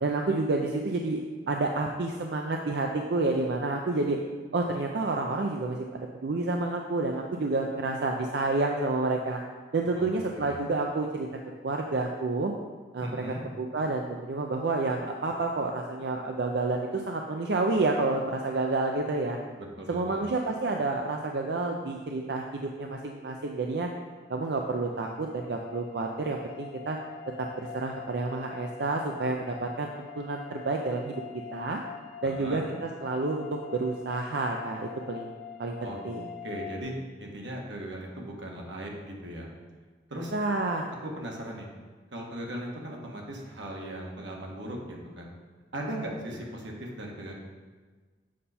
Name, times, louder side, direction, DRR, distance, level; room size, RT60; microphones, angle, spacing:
voice 1, 0.0-1.2 1.5-4.2 4.5-9.4 9.7-11.3 11.6-12.5 12.9-13.2 13.6-19.4 19.9-23.9 24.3-27.0 27.4-31.2 31.5-31.8 32.2-33.5 33.7-35.3 35.6-36.3 40.3-40.9, right 3 dB, 60° right, 2 dB, 0.5 m, -29 dB
voice 2, 13.0-13.4 19.6-20.3 32.2-32.6 35.8-36.0 36.4-36.9 37.2-39.5 40.1-40.3 41.0-41.7 42.1-45.3 45.7-47.4, right 1 dB, 85° right, -1 dB, 1.4 m, -38 dB
sound 1, 23.7-36.8, left 8 dB, 60° left, 0.4 m, -45 dB
7.4 x 5.5 x 4.2 m, 1.4 s
head